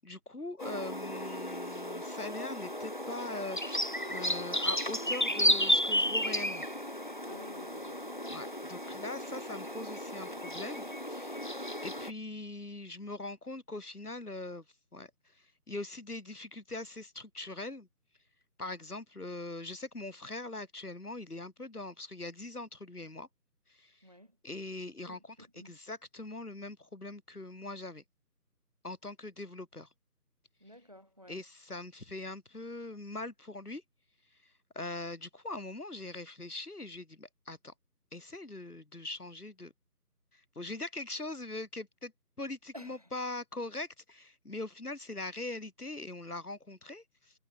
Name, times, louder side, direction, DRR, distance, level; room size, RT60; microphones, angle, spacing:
voice 1, 0.0-6.7 8.3-11.5 11.8-14.6 14.9-15.1 15.7-17.9 18.6-23.3 23.7-24.0 24.4-28.0 28.8-29.9 31.3-33.8 34.7-37.7 38.1-39.7 40.3-42.1 42.4-47.3, left 2 dB, 70° left, 7.9 m, -42 dB
sound 1, 0.6-12.1, equal, 30° left, 1.1 m, -33 dB
voice 2, 7.2-8.1 24.0-24.3 25.1-25.7 30.6-31.4 42.7-43.1, equal, 25° right, 1.3 m, -52 dB
figure-of-eight pair, 170°, 48 cm